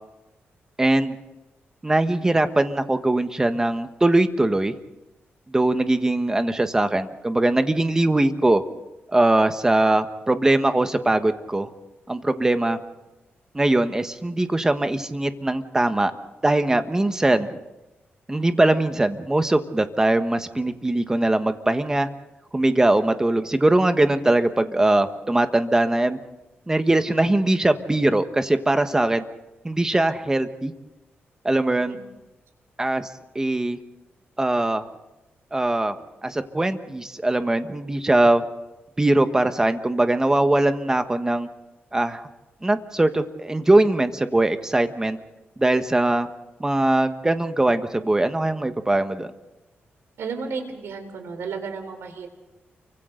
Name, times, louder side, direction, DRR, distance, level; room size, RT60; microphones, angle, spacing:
voice 1, 0.8-1.2 1.8-4.7 5.5-8.6 9.1-11.7 12.1-12.8 13.5-16.1 16.4-17.6 18.3-22.1 22.5-26.2 26.7-29.2 29.6-30.7 31.4-32.0 32.8-33.1 33.3-33.8 34.4-34.9 35.5-35.9 36.2-38.4 39.0-41.5 41.9-42.2 42.6-45.2 45.6-46.3 46.6-49.3, right 2 dB, 15° right, 8 dB, 1.3 m, -21 dB
voice 2, 50.2-52.3, right 5 dB, 80° right, 6 dB, 3.7 m, -33 dB
29.5 x 24.5 x 3.9 m, 0.99 s
wide cardioid pair, 125°, 4 cm